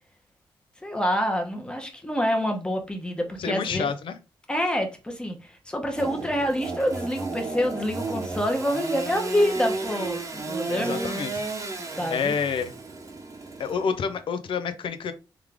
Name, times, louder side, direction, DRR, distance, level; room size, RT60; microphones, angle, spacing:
voice 1, 0.8-3.9 4.5-11.2 12.0-12.3, equal, 10° left, 1.0 m, -27 dB
voice 2, 3.4-4.2 10.7-11.3 12.1-12.7 13.6-15.1, left 6 dB, 75° left, 0.6 m, -28 dB
Engine / Sawing, 6.0-14.2, right 3 dB, 35° right, 0.9 m, -33 dB
3.6 x 3.2 x 3.5 m
wide cardioid pair, 115°, 9 cm